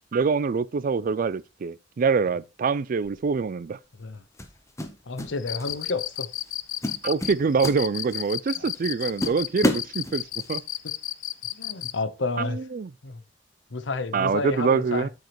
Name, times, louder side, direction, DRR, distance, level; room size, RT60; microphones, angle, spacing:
voice 1, 0.1-3.8 7.0-10.2 10.5-10.6 12.4-12.9 14.1-15.1, right 5 dB, 50° right, 0.4 m, -25 dB
sound 1, 3.0-3.3 4.4-5.3 5.6-5.9 6.4-6.5 6.8-8.3 8.7-8.8 9.2-10.5, left 1 dB, 15° left, 1.0 m, -30 dB
voice 2, 5.1-6.3 8.6-8.7 11.5-12.6 13.0-13.2 13.7-15.1, left 3 dB, 90° left, 0.9 m, -30 dB
Cricket, 5.4-12.0, left 13 dB, 45° left, 0.4 m, -32 dB
13.5 x 4.9 x 3.1 m
head